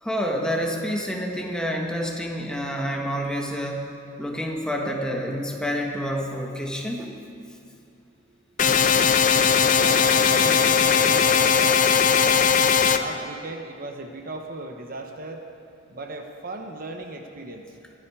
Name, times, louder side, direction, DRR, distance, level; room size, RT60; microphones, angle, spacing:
voice 1, 0.0-3.9 4.2-7.2, equal, 5° left, 0 dB, 1.4 m, -28 dB
sound 1, 8.6-13.0, left 7 dB, 40° left, 0.6 m, -19 dB
voice 2, 9.7-12.5 12.9-15.4 15.9-17.6, right 2 dB, 45° right, 4 dB, 1.0 m, -36 dB
23.5 x 10.5 x 4.9 m, 2.5 s
head